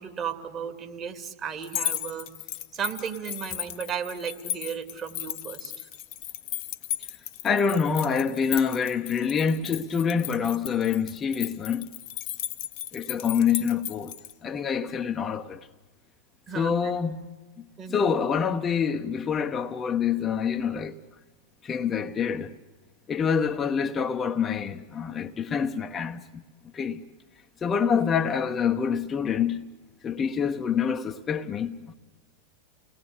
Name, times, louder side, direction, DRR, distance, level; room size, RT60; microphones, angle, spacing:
voice 1, 0.0-2.3 2.7-5.9 16.5-16.9 17.8-18.1, right 7 dB, 30° right, 3.0 m, -35 dB
sound 1, 1.6-14.3, left 13 dB, 45° left, 1.2 m, -35 dB
voice 2, 7.4-11.9 12.9-14.1 14.4-15.6 16.5-17.2 17.9-21.0 21.6-22.5 23.1-26.4 26.7-27.0 27.6-29.7 30.0-31.9, left 7 dB, 20° left, 1.0 m, -26 dB
29.5 x 19.5 x 9.9 m
figure-of-eight pair, 90°, 0 cm